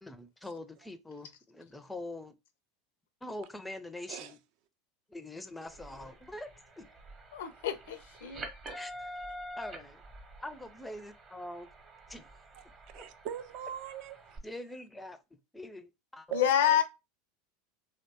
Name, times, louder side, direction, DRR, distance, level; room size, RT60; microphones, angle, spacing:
voice 1, 0.0-2.4 3.2-4.4 5.1-6.9 8.7-9.1 9.5-10.0 10.4-11.7 12.1-12.3 12.9-13.0 14.4-16.3, left 1 dB, 10° left, 0.4 m, -44 dB
sound 1, 5.7-14.4, right 1 dB, 30° right, 0.7 m, -47 dB
voice 2, 7.3-8.4 16.3-16.8, left 10 dB, 70° left, 0.4 m, -28 dB
voice 3, 12.9-14.2 16.3-16.8, right 10 dB, 60° right, 0.4 m, -41 dB
3.0 x 2.1 x 2.7 m
hypercardioid pair, 85°, 0 cm